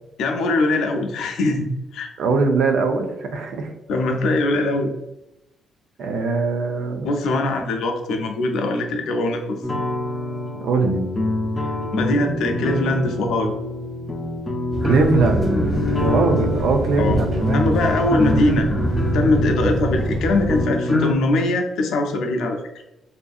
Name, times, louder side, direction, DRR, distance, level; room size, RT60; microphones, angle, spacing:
voice 1, 0.2-1.7 1.9-2.1 3.9-4.9 7.0-9.6 11.6-13.5 17.0-17.2 17.5-18.7 19.1-22.8, left 2 dB, 80° left, 4 dB, 0.4 m, -22 dB
voice 2, 2.2-3.7 6.0-7.1 10.6-11.0 14.8-15.6 16.0-17.7, right 4 dB, 75° right, 5 dB, 0.4 m, -21 dB
sound 1, 9.6-21.1, left 2 dB, 20° left, 0.4 m, -25 dB
sound 2, 14.7-20.6, right 1 dB, 20° right, 1.2 m, -25 dB
2.6 x 2.5 x 2.3 m, 0.88 s
cardioid pair, 90°, 0 cm